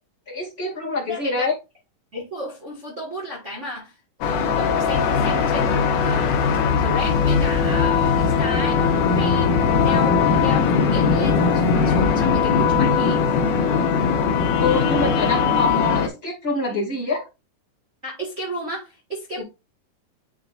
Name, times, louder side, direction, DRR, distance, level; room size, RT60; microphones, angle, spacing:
voice 1, 0.3-1.5 14.6-17.2 19.4-19.5, left 2 dB, 20° left, 1.8 m, -25 dB
voice 2, 1.1-1.5 2.1-3.9 4.2-13.3 15.9-16.1 16.7-16.8 18.0-19.4, equal, 30° right, 1.4 m, -33 dB
sound 1, 4.2-16.1, left 6 dB, 80° left, 2.5 m, -19 dB
10.5 x 3.8 x 2.5 m
omnidirectional pair, 3.9 m